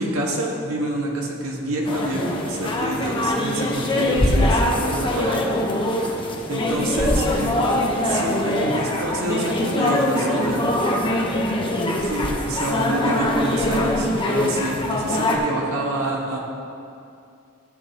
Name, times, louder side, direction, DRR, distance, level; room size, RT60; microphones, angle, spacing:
voice 1, 0.0-5.5 6.5-7.5 8.0-10.7 12.0-16.4, right 1 dB, 80° right, -1 dB, 1.5 m, -27 dB
sound 1, 1.9-15.4, left 1 dB, 25° left, 0.8 m, -23 dB
13.5 x 8.3 x 2.8 m, 2.5 s
head